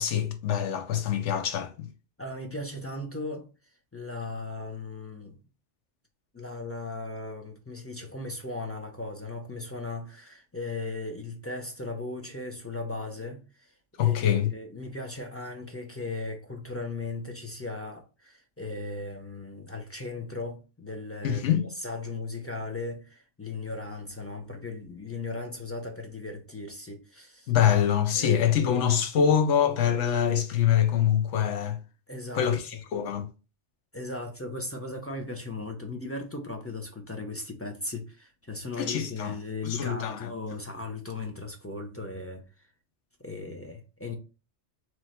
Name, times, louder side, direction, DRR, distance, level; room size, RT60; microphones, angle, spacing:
voice 1, 0.0-1.9 14.0-14.5 21.2-21.7 27.5-31.8 32.3-33.3 38.8-39.3 39.6-40.3, left 9 dB, 85° left, 1.0 m, -25 dB
voice 2, 2.2-3.5 3.9-5.4 6.3-13.7 14.0-27.5 28.1-28.5 32.1-32.6 33.9-42.7 43.2-44.1, left 3 dB, 20° left, 0.4 m, -37 dB
3.1 x 3.0 x 4.1 m
omnidirectional pair, 1.2 m